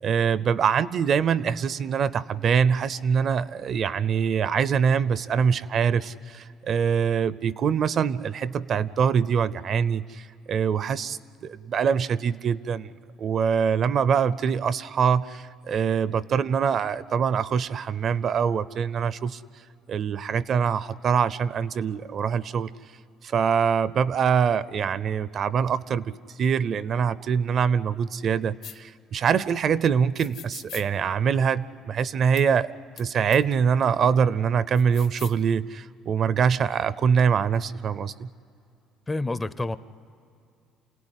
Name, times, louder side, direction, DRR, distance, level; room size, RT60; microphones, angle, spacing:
voice 1, 0.0-12.9 13.2-19.4 19.9-22.7 23.2-32.7 33.0-38.3, right 7 dB, 40° right, 17 dB, 0.5 m, -24 dB
sound 1, 28.6-28.8 30.2-30.9 32.4-32.5 33.0-33.1 33.3-33.4 34.7-35.4, left 9 dB, 60° left, 1.1 m, -41 dB
voice 2, 39.1-39.8, left 2 dB, 15° left, 14 dB, 0.5 m, -28 dB
28.0 x 17.5 x 9.8 m, 2.6 s
cardioid pair, 160°, 0 cm